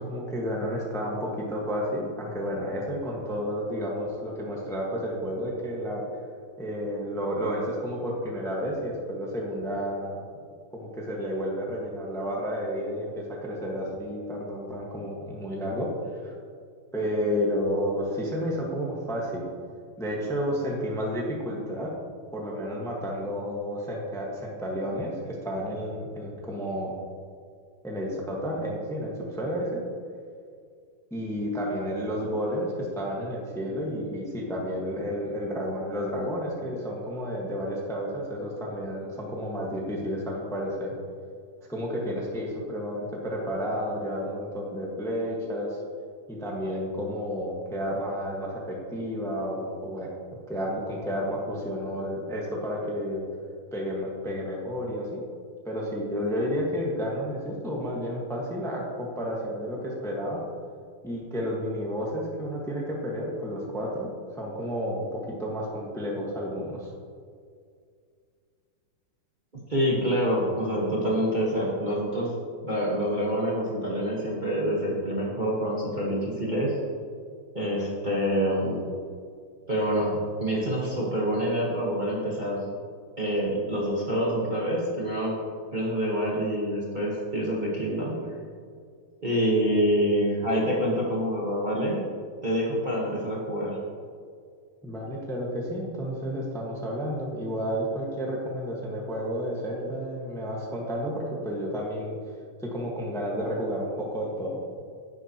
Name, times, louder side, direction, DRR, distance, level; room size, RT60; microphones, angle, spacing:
voice 1, 0.0-6.0 6.6-10.2 10.7-16.3 16.9-19.5 20.0-21.9 22.3-26.9 27.8-29.8 31.1-40.9 41.7-45.8 46.3-50.1 50.5-53.3 53.7-55.2 55.6-60.4 61.0-64.1 64.4-66.9 94.8-102.2 102.6-104.6, equal, ahead, -3 dB, 1.2 m, -31 dB
voice 2, 69.7-72.3 72.6-76.8 77.5-78.9 79.7-82.6 83.2-85.3 85.7-88.2 89.2-92.0 92.4-93.8, equal, 25° right, -5 dB, 1.3 m, -26 dB
10.5 x 9.8 x 3.0 m, 2.2 s
omnidirectional pair, 2.2 m